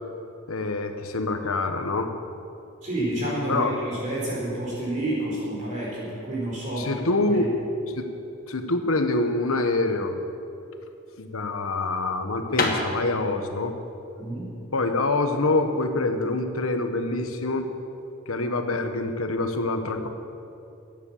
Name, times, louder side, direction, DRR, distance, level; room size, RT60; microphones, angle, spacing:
voice 1, 0.5-2.1 3.5-3.7 6.8-7.5 8.0-8.1 8.5-10.2 11.2-13.7 14.7-17.7 18.3-20.1, left 2 dB, 85° left, 7 dB, 1.3 m, -25 dB
voice 2, 2.8-7.0 7.3-7.5 14.2-14.6, right 1 dB, 35° right, -6 dB, 4.4 m, -29 dB
sound 1, 10.7-16.3, left 3 dB, 40° left, 1.5 m, -32 dB
15.0 x 10.0 x 7.3 m, 2.7 s
head